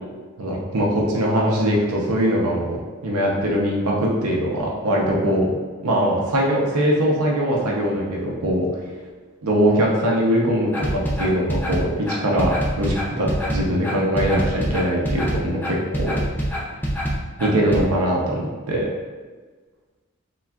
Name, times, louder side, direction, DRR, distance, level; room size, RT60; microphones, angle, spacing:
voice 1, 0.4-5.6 5.8-8.7 9.4-16.1 17.4-18.9, equal, 85° right, -2 dB, 0.5 m, -21 dB
sound 1, 10.7-17.8, equal, 10° left, 0.3 m, -25 dB
3.4 x 2.2 x 2.2 m, 1.4 s
head